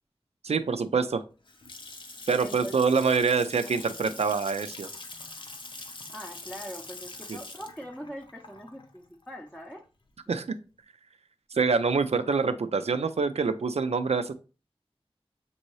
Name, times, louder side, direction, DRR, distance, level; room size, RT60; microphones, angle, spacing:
voice 1, 0.4-1.2 2.3-4.9 7.3-7.4 10.3-10.6 11.5-14.3, right 5 dB, 90° right, 10 dB, 0.4 m, -25 dB
Water tap faucet / Sink (filling or washing) / Splash splatter, 1.2-10.1, left 2 dB, 50° left, 0.6 m, -44 dB
voice 2, 2.4-2.8 6.1-9.8, equal, 5° left, 0 dB, 0.6 m, -42 dB
5.3 x 2.7 x 3.1 m, 0.33 s
wide cardioid pair, 55°, 10 cm